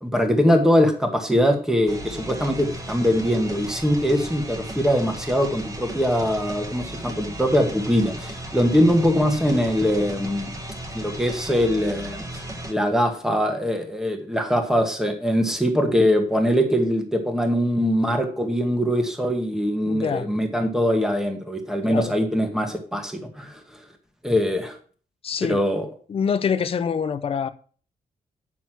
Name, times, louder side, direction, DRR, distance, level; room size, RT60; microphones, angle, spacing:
voice 1, 0.0-10.5 10.9-23.6 24.2-24.8 25.5-25.9, equal, 5° right, 1.3 m, -22 dB
sound 1, 1.9-12.7, right 1 dB, 20° right, 1.5 m, -35 dB
voice 2, 19.9-20.3 21.9-22.1 25.2-25.6 26.1-27.5, left 6 dB, 35° left, 0.7 m, -25 dB
9.4 x 6.0 x 6.0 m
wide cardioid pair, 175°, 16 cm